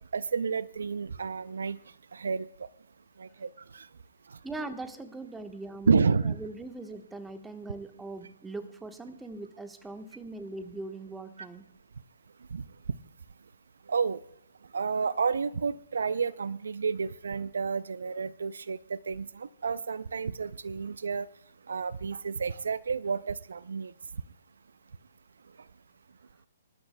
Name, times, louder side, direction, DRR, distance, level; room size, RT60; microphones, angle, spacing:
voice 1, 0.1-1.8 2.1-2.7 3.2-3.9 4.3-4.4 5.9-6.3 12.5-12.6 13.9-14.2 14.7-21.3 21.7-23.9, right 5 dB, 75° right, 19 dB, 0.4 m, -30 dB
voice 2, 4.4-11.6, right 2 dB, 5° right, 8 dB, 1.2 m, -41 dB
26.0 x 12.5 x 2.2 m, 0.74 s
hypercardioid pair, 130°, 0 cm